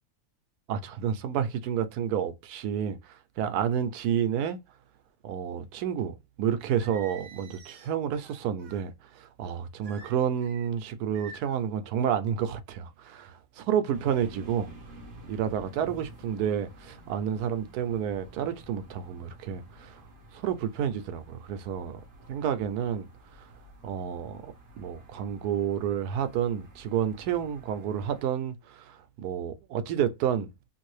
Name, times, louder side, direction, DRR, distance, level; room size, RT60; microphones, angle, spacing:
voice 1, 0.7-4.6 5.2-14.7 15.3-20.0 20.3-22.0 22.3-23.1 23.8-30.5, right 9 dB, 90° right, 1.1 m, -30 dB
Singing, 6.7-8.9 9.8-10.7 11.1-11.7, right 5 dB, 70° right, 1.3 m, -49 dB
sound 1, 13.9-28.2, right 1 dB, 45° right, 1.1 m, -50 dB
2.9 x 2.6 x 3.1 m
omnidirectional pair, 1.6 m